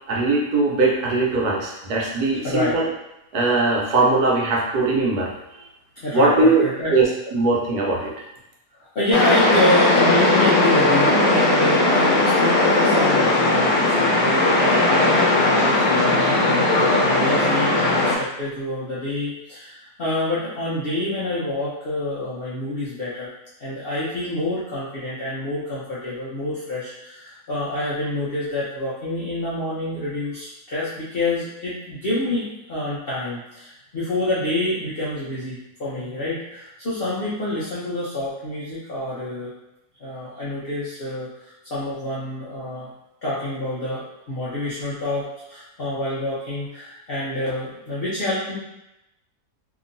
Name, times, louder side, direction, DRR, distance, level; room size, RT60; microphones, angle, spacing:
voice 1, 0.1-2.9 3.3-5.6 6.1-6.6 6.9-8.1, right 3 dB, 75° right, -3 dB, 1.2 m, -20 dB
voice 2, 2.4-2.7 6.0-7.0 8.8-23.3 23.6-39.5 40.0-42.9 43.2-48.6, left 1 dB, 60° left, -9 dB, 0.6 m, -27 dB
sound 1, 9.1-18.1, left 2 dB, 85° left, 1.3 m, -18 dB
2.9 x 2.6 x 2.6 m, 0.89 s
omnidirectional pair, 1.7 m